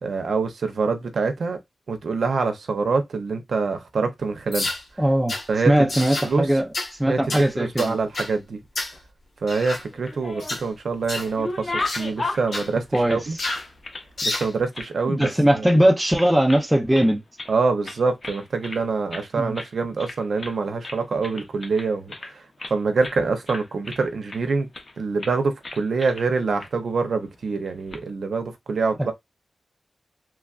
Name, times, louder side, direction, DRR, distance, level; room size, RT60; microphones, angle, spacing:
voice 1, 0.0-1.6 1.9-4.7 5.5-5.9 6.2-6.5 7.1-8.6 9.4-12.8 13.1-13.4 14.2-15.3 15.5-15.8 17.5-24.7 25.0-29.1, right 4 dB, 80° right, 0.6 m, -25 dB
sound 1, 4.5-4.8 5.3-5.5 5.9-6.3 6.7-6.9 7.3-7.5 7.8-8.3 8.8-9.0 9.5-9.8 10.4-10.6 11.1-11.3 11.9-12.1 12.5-12.7 13.4-13.7 14.2-14.5, left 2 dB, 65° left, 1.1 m, -29 dB
voice 2, 5.0-5.4 5.7-6.7 7.0-8.0 12.9-13.3 15.1-17.2 19.4-19.6 29.0-29.1, right 1 dB, 10° right, 0.5 m, -20 dB
sound 2, 9.9-10.7 11.1-14.0 14.3-15.4 15.6-15.8 16.1-16.7 16.9-17.6 17.8-18.8 19.1-19.3 19.5-19.7 20.0-20.6 20.8-22.7 23.0-23.2 23.5-24.4 24.7-24.9 25.2-25.4 25.6-26.3 26.6-26.7 27.7-28.0, left 2 dB, 45° left, 0.7 m, -34 dB
3.1 x 2.4 x 2.3 m
wide cardioid pair, 75°, 0 cm